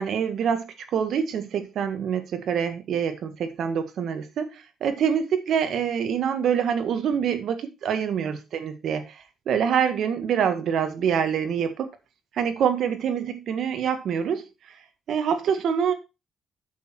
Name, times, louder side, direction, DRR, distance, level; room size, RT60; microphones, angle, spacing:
voice 1, 0.0-11.9 12.3-14.5 15.1-15.9, right 7 dB, 70° right, 1.8 m, -26 dB
8.3 x 6.7 x 4.5 m
cardioid pair, 90°, 0 cm